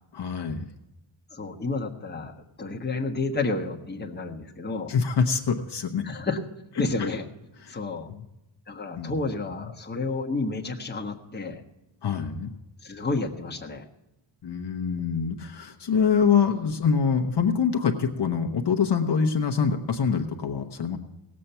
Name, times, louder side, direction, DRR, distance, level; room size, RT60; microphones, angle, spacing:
voice 1, 0.1-0.6 4.9-6.0 7.0-7.1 7.6-7.8 8.1-8.2 9.0-9.2 9.5-9.7 12.0-12.5 14.4-21.0, left 6 dB, 55° left, 4 dB, 1.0 m, -25 dB
voice 2, 1.3-2.3 2.6-4.9 6.0-6.4 6.8-7.2 7.7-8.1 8.7-11.6 12.8-13.8, left 3 dB, 20° left, 0 dB, 1.3 m, -30 dB
18.0 x 7.6 x 5.6 m, 0.96 s
wide cardioid pair, 160°, 50 cm